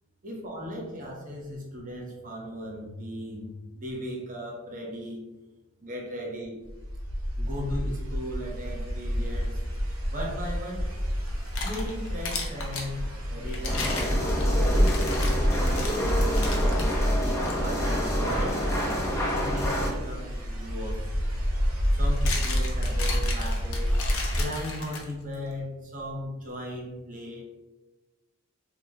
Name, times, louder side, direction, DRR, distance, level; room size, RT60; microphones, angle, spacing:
voice 1, 0.2-5.2 5.8-6.6 7.4-9.6 10.1-10.9 11.6-14.3 14.7-21.1 21.9-24.0 24.4-27.4, equal, 40° right, -1 dB, 0.7 m, -37 dB
sound 1, 6.6-24.4, equal, 70° right, 1.0 m, -29 dB
sound 2, 11.3-12.9 13.5-16.9 17.4-17.6 18.2-18.4 20.6-20.7 21.8-25.3, left 4 dB, 65° left, 0.6 m, -36 dB
sound 3, 13.6-19.9, equal, 15° left, 0.6 m, -27 dB
2.9 x 2.1 x 3.6 m, 1.1 s
head